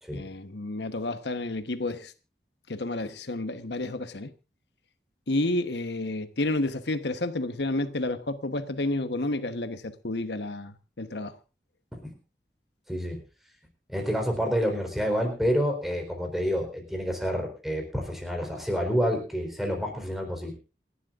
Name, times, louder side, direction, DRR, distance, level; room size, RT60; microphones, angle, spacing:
voice 1, 0.1-2.1 2.7-4.3 5.3-11.4, left 2 dB, 80° left, 1.1 m, -30 dB
voice 2, 12.9-13.2 13.9-20.5, equal, ahead, 4.2 m, -28 dB
28.0 x 11.5 x 2.5 m
head